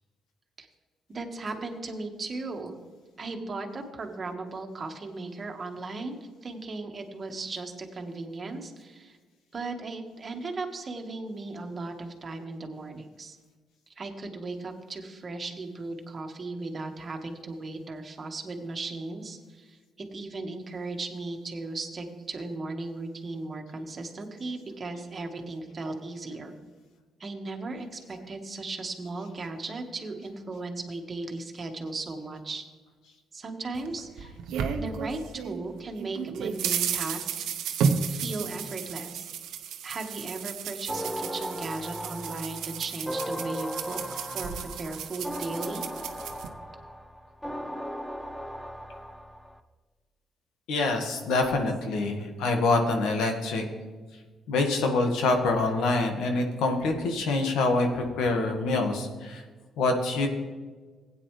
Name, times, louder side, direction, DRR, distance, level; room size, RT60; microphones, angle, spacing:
voice 1, 1.1-2.7 3.2-9.2 9.5-13.4 13.9-26.5 27.2-32.6 33.3-34.4 34.7-37.5 38.1-39.3 39.8-45.9, right 3 dB, 35° right, 4 dB, 1.6 m, -37 dB
sound 1, 33.7-35.6 36.0-46.5, right 6 dB, 85° right, 0.9 m, -33 dB
sound 2, 40.9-49.6, equal, 5° left, 0.7 m, -37 dB
voice 2, 50.7-53.6 54.5-59.4 59.8-60.3, left 3 dB, 85° left, 4 dB, 1.7 m, -25 dB
16.0 x 9.2 x 3.3 m, 1.4 s
cardioid pair, 90°, 0 cm